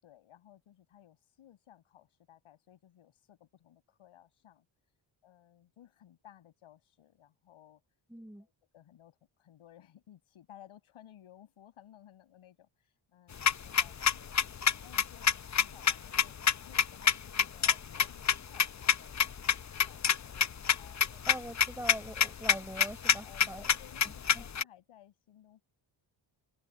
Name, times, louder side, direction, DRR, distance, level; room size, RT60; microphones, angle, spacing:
voice 1, 0.0-4.7 5.2-7.8 8.4-15.3 15.6-21.0 23.2-25.7, left 11 dB, 85° left, 7.0 m, -58 dB
voice 2, 8.1-8.5 21.3-23.7 24.0-24.4, right 1 dB, 5° right, 5.9 m, -43 dB
sound 1, 13.3-24.6, left 7 dB, 35° left, 0.8 m, -27 dB
cardioid pair, 65°, 48 cm